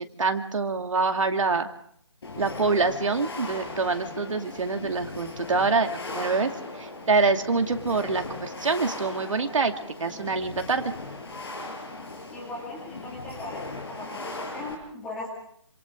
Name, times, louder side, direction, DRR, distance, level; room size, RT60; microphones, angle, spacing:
voice 1, 0.0-1.7 2.4-6.5 6.8-10.8, right 4 dB, 85° right, 5 dB, 2.5 m, -25 dB
sound 1, 2.2-14.8, left 2 dB, 55° left, 6.3 m, -38 dB
voice 2, 12.3-15.3, left 2 dB, 5° left, -2 dB, 2.4 m, -38 dB
27.0 x 27.0 x 3.8 m, 0.64 s
hypercardioid pair, 175°, 16 cm